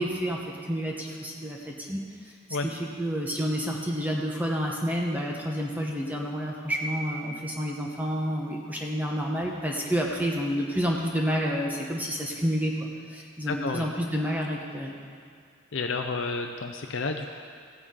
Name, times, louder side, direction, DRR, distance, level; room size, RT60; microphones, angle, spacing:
voice 1, 0.0-2.0 2.6-12.7 13.1-14.9, equal, 10° right, -2 dB, 0.9 m, -29 dB
voice 2, 13.5-13.9 15.7-17.3, left 4 dB, 65° left, 4 dB, 0.6 m, -30 dB
15.5 x 9.7 x 3.8 m, 2.1 s
head